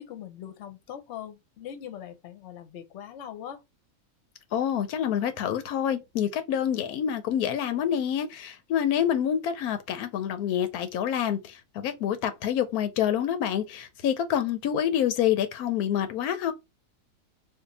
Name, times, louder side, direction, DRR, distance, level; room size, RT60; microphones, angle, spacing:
voice 1, 0.0-3.6, left 10 dB, 60° left, 0.9 m, -41 dB
voice 2, 4.5-16.5, left 9 dB, 90° left, 1.1 m, -27 dB
2.6 x 2.4 x 4.0 m
omnidirectional pair, 1.6 m